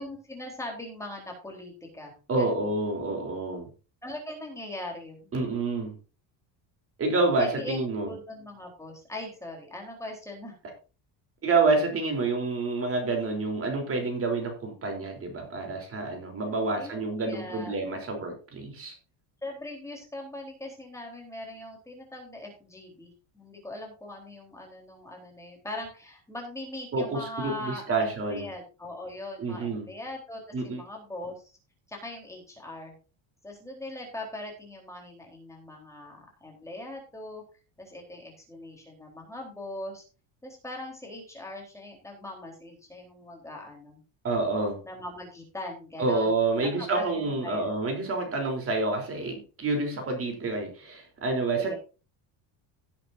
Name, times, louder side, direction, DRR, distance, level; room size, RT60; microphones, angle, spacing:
voice 1, 0.0-2.7 4.0-5.3 7.4-10.5 16.7-17.7 19.4-31.6 31.9-32.9 33.4-37.4 37.8-40.0 40.4-44.0 44.8-47.7 49.6-49.9 51.7-51.8, left 1 dB, 5° left, 0 dB, 3.9 m, -41 dB
voice 2, 2.3-3.7 5.3-6.0 7.0-8.1 11.4-19.0 26.9-28.5 29.4-29.9 30.5-30.8 44.2-44.8 46.0-51.8, right 3 dB, 30° right, 3 dB, 3.8 m, -28 dB
17.5 x 8.6 x 2.7 m, 0.33 s
cardioid pair, 165°, 45 cm